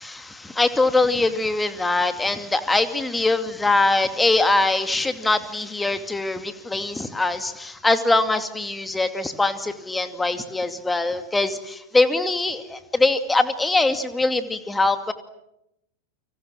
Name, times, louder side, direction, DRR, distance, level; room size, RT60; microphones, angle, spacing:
voice 1, 0.0-15.1, left 2 dB, 10° left, 9 dB, 2.5 m, -22 dB
30.0 x 25.5 x 7.6 m, 0.82 s
figure-of-eight pair, 90°, 0 cm